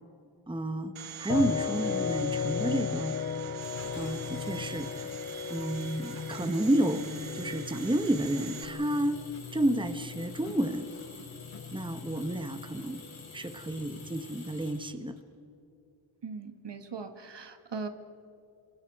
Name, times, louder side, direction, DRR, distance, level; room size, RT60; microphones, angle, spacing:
voice 1, 0.5-0.9 1.2-3.2 3.9-5.1 5.5-9.3 9.5-10.9 11.7-13.0 13.3-15.1, right 1 dB, 10° right, 9 dB, 1.2 m, -30 dB
Domestic sounds home sounds, 1.0-8.7, right 10 dB, 85° right, 1.0 m, -44 dB
sound 1, 1.3-14.3, left 7 dB, 30° left, 0.5 m, -37 dB
Engine, 3.6-15.2, left 4 dB, 75° left, 6.9 m, -49 dB
voice 2, 16.2-17.9, right 5 dB, 60° right, 8 dB, 1.8 m, -39 dB
27.0 x 24.5 x 4.8 m, 2.7 s
cardioid pair, 75°, 47 cm